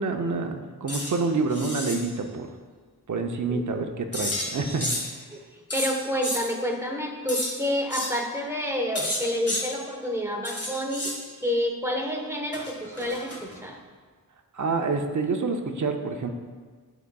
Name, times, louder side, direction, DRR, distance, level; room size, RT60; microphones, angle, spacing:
voice 1, 0.0-2.5 3.1-5.1 14.5-16.3, right 3 dB, 50° right, 4 dB, 0.7 m, -27 dB
sound 1, 0.9-1.1 1.5-2.0 4.1-5.2 5.7-6.4 7.3-7.5 7.9-8.1 9.0-9.6 10.4-11.2 12.5-13.6, left 1 dB, 40° left, 1.6 m, -31 dB
voice 2, 5.7-11.1 11.4-13.8, equal, 5° right, 1 dB, 1.0 m, -29 dB
11.0 x 4.0 x 2.3 m, 1.5 s
wide cardioid pair, 55°, 38 cm